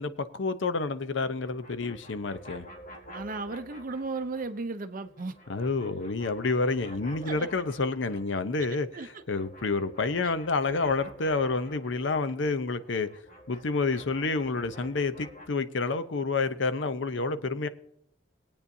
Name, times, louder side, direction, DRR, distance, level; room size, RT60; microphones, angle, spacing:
voice 1, 0.0-2.7 5.5-13.1 13.5-17.7, left 3 dB, 75° left, 0.7 m, -29 dB
sound 1, 1.2-4.7 4.9-8.6 8.9-15.5, equal, 45° left, 2.2 m, -49 dB
voice 2, 3.1-5.4 7.2-7.5 8.7-9.2 10.2-10.3, right 3 dB, 45° right, 0.6 m, -35 dB
20.5 x 8.6 x 2.7 m
head